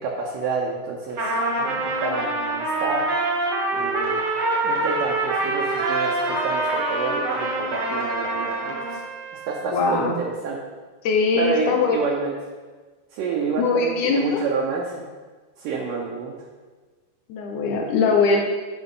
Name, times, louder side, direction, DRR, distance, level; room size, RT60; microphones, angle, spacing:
voice 1, 0.0-3.0 3.7-4.2 4.6-9.0 9.5-10.6 11.3-12.3 13.1-15.0 15.6-16.3 17.8-17.9, right 4 dB, 70° right, -2 dB, 2.2 m, -29 dB
Trumpet, 1.2-9.0, right 2 dB, 50° right, 1.8 m, -25 dB
Trumpet 2, 5.5-9.8, right 3 dB, 90° right, 4.5 m, -37 dB
voice 2, 9.7-10.2 11.0-12.1 13.6-14.4 17.3-18.4, left 4 dB, 75° left, 1 dB, 1.8 m, -21 dB
11.5 x 5.0 x 3.8 m, 1.4 s
omnidirectional pair, 4.6 m